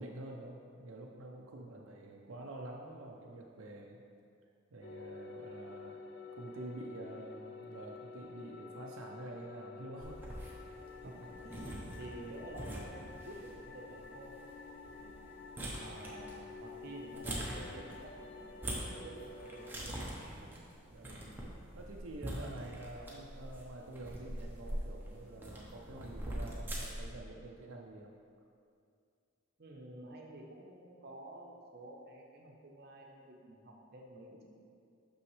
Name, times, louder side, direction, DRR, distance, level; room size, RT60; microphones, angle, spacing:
voice 1, 0.0-4.0 4.7-6.0 6.3-10.6 20.9-21.2 21.7-28.1, right 2 dB, 80° right, -1 dB, 0.5 m, -48 dB
voice 2, 1.6-1.9 11.0-14.4 14.8-15.3 15.8-20.1 20.4-20.6 21.0-21.5 29.6-34.5, right 1 dB, 50° right, -1 dB, 0.8 m, -51 dB
sound 1, 4.8-19.8, left 4 dB, 55° left, 0.4 m, -50 dB
sound 2, 10.0-27.2, right 1 dB, 10° right, 0.8 m, -44 dB
6.2 x 5.8 x 3.2 m, 2.3 s
head